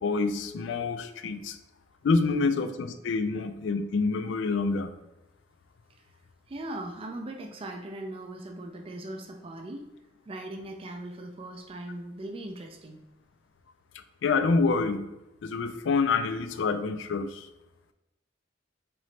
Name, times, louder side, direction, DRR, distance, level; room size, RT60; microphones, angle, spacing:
voice 1, 0.0-1.6 2.0-4.9 14.2-15.1 15.4-17.5, left 4 dB, 70° left, 10 dB, 0.4 m, -27 dB
voice 2, 6.5-9.9 10.3-13.0, right 1 dB, 30° right, 2 dB, 0.4 m, -39 dB
3.7 x 3.1 x 3.1 m, 0.99 s
head